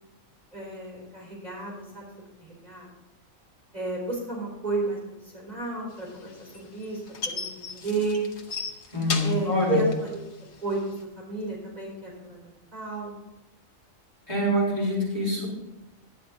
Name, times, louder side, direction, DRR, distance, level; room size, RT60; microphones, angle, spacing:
voice 1, 0.5-2.9 3.7-8.3 9.2-10.2 10.6-10.8 11.2-13.2, right 3 dB, 30° right, -5 dB, 4.0 m, -32 dB
sound 1, 6.0-11.0, left 4 dB, 60° left, 1.2 m, -35 dB
voice 2, 8.9-9.8 14.3-15.5, left 1 dB, 20° left, -7 dB, 4.8 m, -25 dB
12.0 x 9.8 x 3.9 m, 0.99 s
omnidirectional pair, 1.4 m